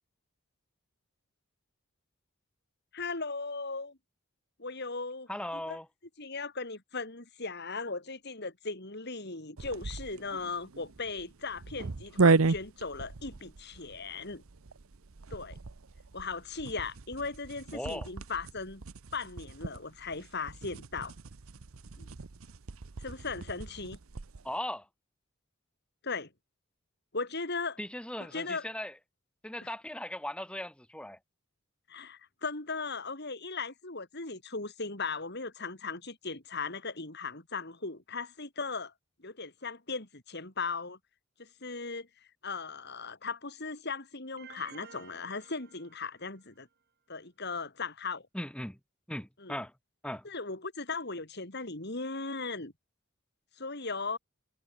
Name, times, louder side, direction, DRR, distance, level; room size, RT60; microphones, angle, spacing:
voice 1, 2.9-4.0 4.6-5.8 6.2-14.4 15.3-15.6 16.1-18.8 19.1-21.1 22.0-22.1 23.0-24.0 26.0-26.3 27.1-27.8 28.3-28.7 31.9-38.9 39.2-41.0 41.4-42.1 42.4-46.7 47.1-48.3 49.4-49.6 50.2-52.7 53.6-54.2, left 4 dB, 50° left, 3.9 m, -38 dB
voice 2, 5.3-5.9 17.7-18.1 24.4-24.9 27.8-28.9 29.4-31.2 48.3-48.8 49.1-49.7 50.0-50.2, left 1 dB, 5° left, 1.6 m, -38 dB
sound 1, 9.6-24.5, right 4 dB, 80° right, 0.9 m, -34 dB
sound 2, 44.4-46.5, right 6 dB, 50° right, 7.9 m, -53 dB
head